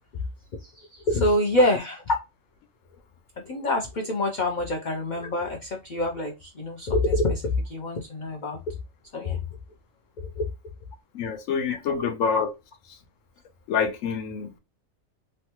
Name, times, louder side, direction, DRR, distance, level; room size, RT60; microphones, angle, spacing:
voice 1, 0.6-2.1 3.4-8.7 9.1-9.4 10.4-10.5, left 1 dB, 60° left, 0.5 m, -26 dB
voice 2, 11.1-12.5 13.7-14.5, left 6 dB, 75° left, 1.0 m, -26 dB
3.1 x 2.2 x 2.9 m
omnidirectional pair, 1.4 m